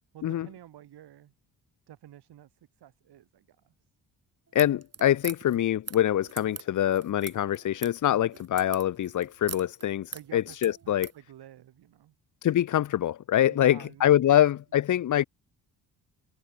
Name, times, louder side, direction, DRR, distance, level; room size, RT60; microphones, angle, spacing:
voice 1, 0.1-1.3 1.9-3.7 10.1-12.2 13.5-14.4, right 12 dB, 85° right, 5.2 m, -50 dB
voice 2, 4.5-11.1 12.4-15.2, left 11 dB, 50° left, 0.6 m, -24 dB
sound 1, 4.5-11.2, right 6 dB, 40° right, 3.6 m, -42 dB
cardioid pair, 90°, 38 cm